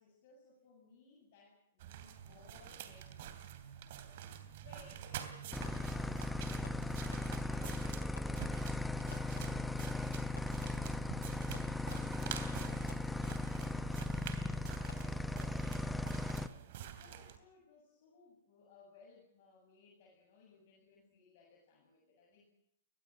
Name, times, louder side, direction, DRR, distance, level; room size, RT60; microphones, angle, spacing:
voice 1, 0.0-4.2 4.4-10.0 11.8-15.7 16.4-16.6 17.0-22.5, left 4 dB, 50° left, -1 dB, 8.0 m, -63 dB
sound 1, 1.8-17.4, right 10 dB, 50° right, 3.0 m, -48 dB
sound 2, 5.5-16.5, left 2 dB, 5° left, 0.9 m, -38 dB
Fireworks, 5.6-6.1 6.6-7.6 8.0-8.8 9.1-9.8 10.4-12.3 12.9-13.5 14.0-14.4 14.9-15.6, left 5 dB, 75° left, 3.2 m, -58 dB
23.0 x 20.5 x 7.7 m, 0.74 s
figure-of-eight pair, 110°, 0 cm